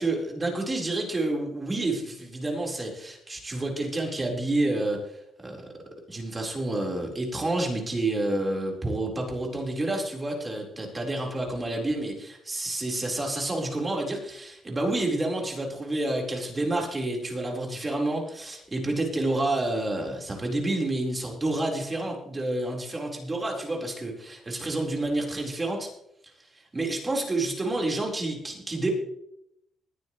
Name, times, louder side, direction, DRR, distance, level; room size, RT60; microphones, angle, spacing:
voice 1, 0.0-5.7 6.1-25.9 26.5-28.9, right 2 dB, 25° right, 0 dB, 4.3 m, -29 dB
20.5 x 9.7 x 3.2 m, 0.77 s
cardioid pair, 90°, 0 cm